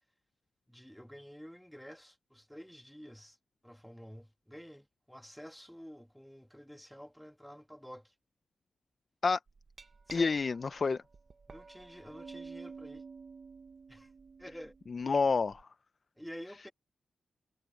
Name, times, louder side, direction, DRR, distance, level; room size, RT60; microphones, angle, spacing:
voice 1, 0.7-3.4 3.6-8.1 10.1-10.3 11.5-13.0 13.9-14.1 14.4-14.8 16.2-16.7, equal, ahead, 2.0 m, -49 dB
Glass, 9.5-15.6, right 4 dB, 35° right, 0.8 m, -51 dB
voice 2, 10.1-11.0 14.9-15.7, left 4 dB, 35° left, 0.5 m, -29 dB
wide cardioid pair, 150°, 0 cm